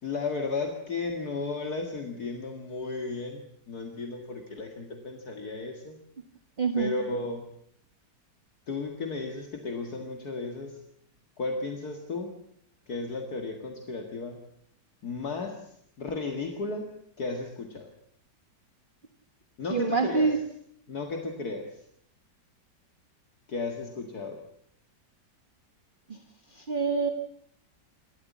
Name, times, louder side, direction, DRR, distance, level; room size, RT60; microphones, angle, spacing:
voice 1, 0.0-6.0 6.7-7.5 8.7-10.8 11.4-12.3 12.9-14.4 15.0-17.9 19.6-20.3 20.9-21.8 23.5-24.4, left 3 dB, 60° left, 4 dB, 2.4 m, -34 dB
voice 2, 6.6-6.9 19.7-20.4 26.7-27.1, right 5 dB, 30° right, 7 dB, 1.4 m, -25 dB
28.0 x 13.5 x 8.4 m, 0.70 s
omnidirectional pair, 1.8 m